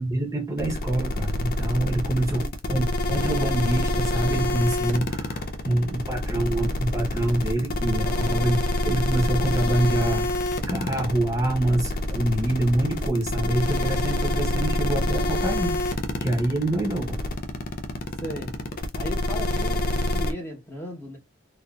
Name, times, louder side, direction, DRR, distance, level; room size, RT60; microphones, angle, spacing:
voice 1, 0.0-8.6 8.8-15.8 16.2-17.2, right 1 dB, 15° right, 1.0 m, -26 dB
sound 1, 0.6-20.3, left 1 dB, 50° left, 0.5 m, -26 dB
voice 2, 8.0-8.4 18.2-18.6 18.9-21.2, equal, 10° left, 1.0 m, -36 dB
3.9 x 2.5 x 2.3 m
head